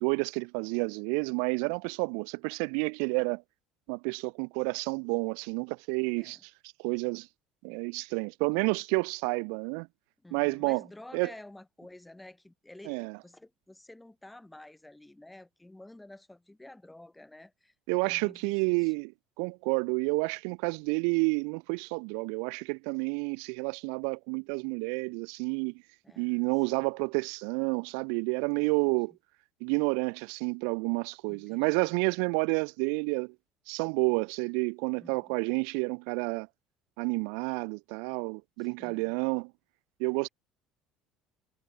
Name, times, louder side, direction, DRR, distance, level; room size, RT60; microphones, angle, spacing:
voice 1, 0.0-3.4 3.9-6.4 6.8-7.3 7.6-9.9 10.3-10.8 11.1-11.3 12.9-13.2 17.9-19.1 19.4-25.7 26.2-29.1 29.6-33.3 33.7-36.5 37.0-39.5 40.0-40.3, right 40 dB or more, 85° right, 0.5 m, -30 dB
voice 2, 10.2-17.7 18.0-18.9 26.0-26.8 28.5-29.0 31.3-31.9 35.0-35.3 38.6-39.1, left 1 dB, 5° left, 6.7 m, -51 dB
cardioid pair, 180°, 0 cm